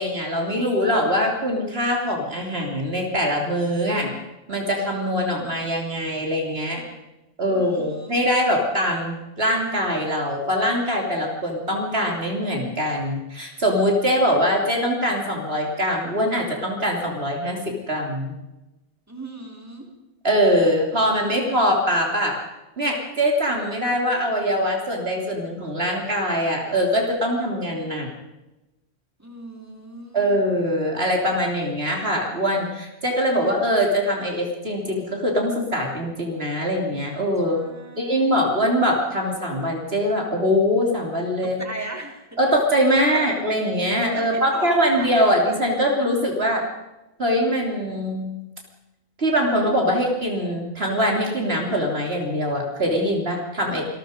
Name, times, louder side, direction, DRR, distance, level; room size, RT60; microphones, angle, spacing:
voice 1, 0.0-4.1 4.5-6.8 7.4-17.6 17.9-18.3 20.2-22.4 22.8-28.1 30.1-37.6 38.0-41.6 42.4-46.6 47.2-48.3 49.2-53.8, equal, 50° right, 1 dB, 3.5 m, -22 dB
voice 2, 7.5-8.3 19.1-19.9 29.2-30.4 37.5-38.4 41.6-42.2 42.9-43.2 44.1-45.2, right 2 dB, 10° right, 1 dB, 3.7 m, -37 dB
26.5 x 20.5 x 5.2 m, 1.0 s
omnidirectional pair, 1.3 m